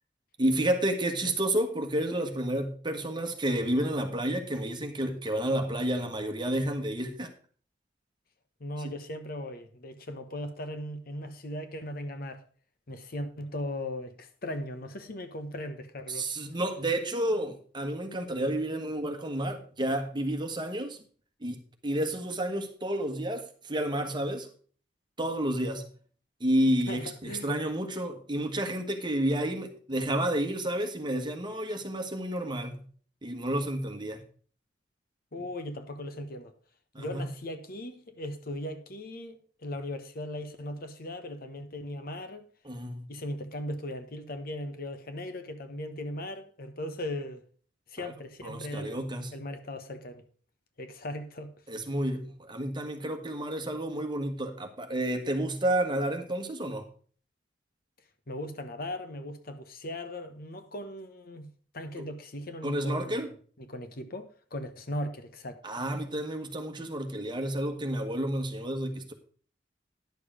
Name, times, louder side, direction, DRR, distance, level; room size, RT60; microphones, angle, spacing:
voice 1, 0.4-7.3 16.1-21.0 21.4-21.6 21.8-24.5 25.2-25.9 26.4-32.8 33.2-34.2 36.9-37.3 42.6-43.1 48.0-48.1 48.4-49.3 51.7-56.9 62.6-63.3 65.6-69.1, right 1 dB, 25° right, 1.5 m, -30 dB
voice 2, 8.6-12.4 12.9-16.3 26.9-27.6 35.3-36.5 37.0-42.4 43.1-47.4 47.9-49.0 49.3-50.2 50.8-51.5 58.3-61.5 61.7-65.6, left 1 dB, 55° left, 1.1 m, -38 dB
10.5 x 6.9 x 4.9 m
head